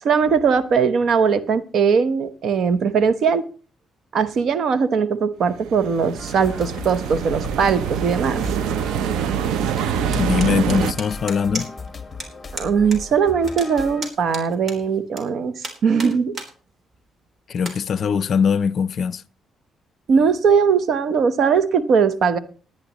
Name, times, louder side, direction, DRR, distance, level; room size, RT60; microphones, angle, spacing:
voice 1, 0.0-3.4 4.1-8.4 12.5-16.3 20.1-22.4, right 6 dB, 65° right, 1.0 m, -20 dB
sound 1, 5.6-10.9, right 8 dB, 85° right, 0.7 m, -25 dB
sound 2, 6.2-14.1, left 3 dB, 20° left, 1.8 m, -36 dB
sound 3, 10.1-11.9 12.2-12.3 12.6-13.0 13.3-15.2 15.6-16.5 16.9-17.0 17.6-17.8, right 2 dB, 45° right, 3.7 m, -33 dB
voice 2, 10.2-11.7 17.5-19.2, left 6 dB, 55° left, 0.5 m, -21 dB
19.5 x 10.0 x 3.1 m
cardioid pair, 90°, 0 cm